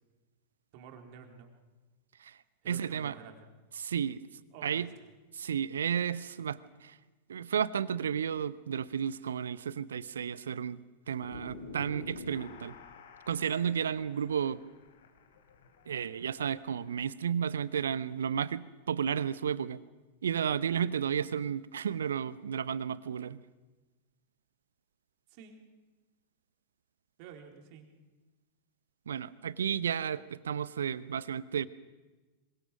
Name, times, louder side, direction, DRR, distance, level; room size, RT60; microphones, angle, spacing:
voice 1, 0.7-1.5 2.6-3.6 4.5-4.9 25.3-25.6 27.2-27.9, right 7 dB, 45° right, 4 dB, 4.0 m, -50 dB
voice 2, 2.7-3.1 3.8-4.2 4.6-4.9 5.3-7.0 7.3-10.8 11.1-12.7 13.3-14.6 15.9-19.8 20.2-23.4 29.1-31.7, right 8 dB, 65° right, 18 dB, 0.9 m, -32 dB
sound 1, 11.2-17.0, left 3 dB, 60° left, 3.5 m, -49 dB
26.0 x 24.0 x 6.2 m, 1.2 s
figure-of-eight pair, 90°, 0 cm